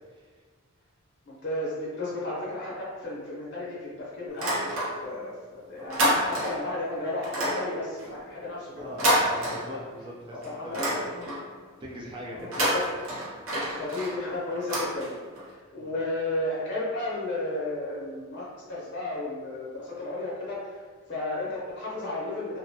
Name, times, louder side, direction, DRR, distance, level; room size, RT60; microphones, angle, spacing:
voice 1, 1.3-4.7 5.0-8.9 9.3-9.8 10.4-11.3 12.3-12.8 13.8-15.2 15.4-20.8 21.1-22.6, left 2 dB, 50° left, -6 dB, 0.6 m, -33 dB
sound 1, 4.3-5.3 5.6-6.7 7.2-10.1 10.4-11.6 12.4-15.5, right 1 dB, 70° right, 0.7 m, -29 dB
voice 2, 8.7-10.8 11.8-12.6 13.3-13.4 15.8-15.9, equal, 20° right, -3 dB, 0.4 m, -41 dB
2.5 x 2.1 x 2.7 m, 1.5 s
head